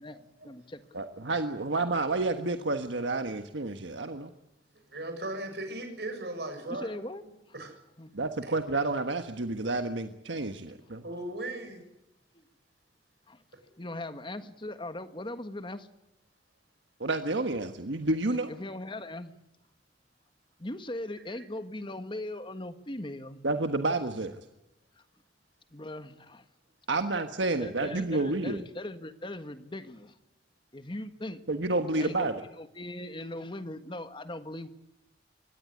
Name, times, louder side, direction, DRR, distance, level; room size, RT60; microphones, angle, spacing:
voice 1, 0.0-1.0 6.7-7.2 8.0-8.1 13.3-13.4 13.7-15.9 18.3-19.4 20.6-23.4 25.7-26.4 27.6-30.1 30.7-31.4 32.0-34.7, left 1 dB, 25° left, 10 dB, 1.5 m, -39 dB
voice 2, 0.9-4.3 8.1-11.0 17.0-18.5 23.4-24.4 26.9-28.6 31.5-32.4, right 2 dB, 80° right, 7 dB, 1.4 m, -30 dB
voice 3, 4.9-6.9 7.5-7.7 11.0-11.8, right 1 dB, 60° right, 6 dB, 6.9 m, -37 dB
24.0 x 18.0 x 9.7 m, 0.88 s
head